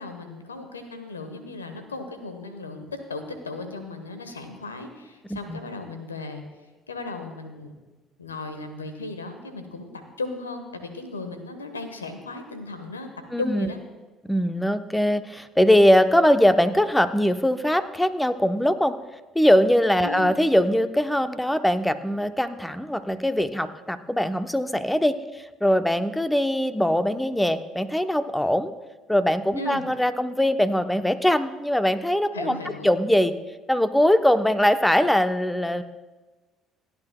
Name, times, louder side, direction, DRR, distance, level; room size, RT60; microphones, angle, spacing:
voice 1, 0.0-6.4 6.9-7.7 8.2-9.9 10.2-13.1 13.4-13.8 20.0-20.3 29.6-29.8 32.3-32.9, left 3 dB, 90° left, 8 dB, 1.1 m, -36 dB
voice 2, 13.3-13.7 14.3-19.0 19.3-25.2 25.6-28.7 29.1-32.6 32.8-33.4 33.7-35.8, equal, 5° left, 11 dB, 0.8 m, -21 dB
28.5 x 9.8 x 2.3 m, 1.2 s
hypercardioid pair, 55°, 0 cm